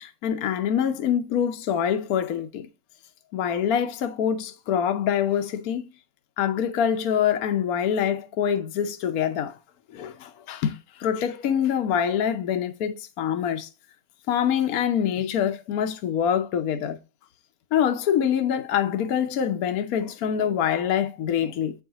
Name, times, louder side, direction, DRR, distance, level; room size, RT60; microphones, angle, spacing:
voice 1, 0.0-2.7 3.3-5.8 6.4-9.6 9.9-13.7 14.3-17.0 17.7-21.7, left 8 dB, 65° left, 1.1 m, -25 dB
7.7 x 4.7 x 2.8 m
omnidirectional pair, 1.8 m